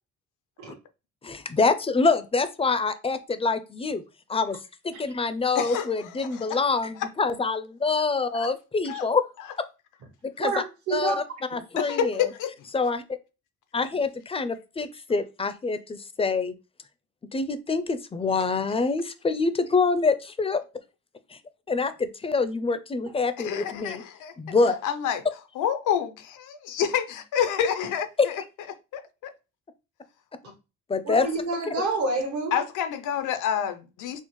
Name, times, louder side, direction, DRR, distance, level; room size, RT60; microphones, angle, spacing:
voice 1, 1.2-4.0 4.3-4.6 4.8-9.3 10.2-10.6 10.9-11.2 11.5-12.3 12.7-13.0 13.7-16.5 17.3-20.6 21.3-21.4 21.7-24.0 24.4-24.8 28.2-28.4 30.9-31.3 31.7-31.8, left 4 dB, 20° left, 0.4 m, -26 dB
voice 2, 5.6-5.9 6.5-6.6 8.3-8.5 8.9-9.0 11.8-12.5 23.4-24.3 24.8-25.2 25.6-28.1 28.9-29.3 32.5-34.2, left 9 dB, 85° left, 0.6 m, -28 dB
voice 3, 10.4-11.2 31.0-32.5, right 3 dB, 65° right, 0.9 m, -28 dB
4.3 x 2.1 x 3.0 m
cardioid pair, 90°, 30 cm